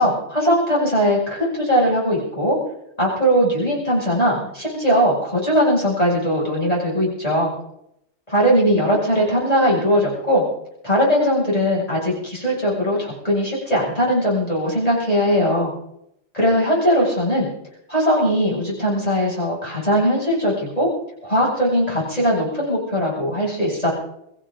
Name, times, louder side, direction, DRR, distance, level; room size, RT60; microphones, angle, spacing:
voice 1, 0.0-2.6 3.0-7.5 8.3-10.4 10.8-15.7 16.3-17.5 17.9-20.9 21.2-23.9, equal, 30° left, -5 dB, 7.5 m, -19 dB
24.0 x 14.5 x 4.0 m, 0.76 s
omnidirectional pair, 1.4 m